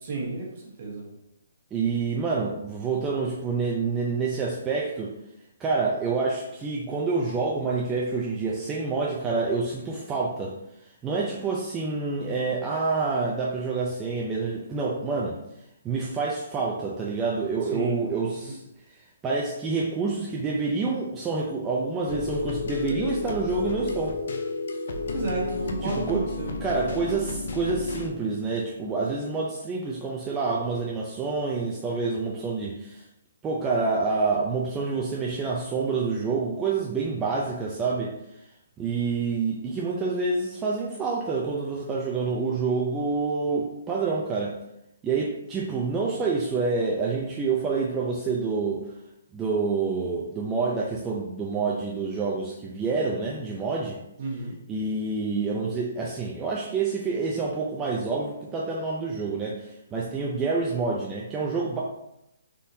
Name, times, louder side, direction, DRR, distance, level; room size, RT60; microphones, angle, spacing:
voice 1, 0.0-0.5 0.8-1.1 17.7-18.1 18.5-18.6 25.1-26.5 54.2-54.6, right 3 dB, 45° right, -2 dB, 1.1 m, -31 dB
voice 2, 1.7-5.1 5.6-10.5 11.0-15.4 15.8-18.6 19.2-24.2 25.8-26.2 26.6-33.0 33.4-38.1 38.8-44.6 45.0-48.9 49.3-54.0 54.7-61.8, right 4 dB, 15° right, -4 dB, 0.4 m, -27 dB
sound 1, 22.1-28.1, left 3 dB, 65° left, 0.4 m, -32 dB
3.6 x 2.5 x 2.7 m, 0.85 s
hypercardioid pair, 150°, 0 cm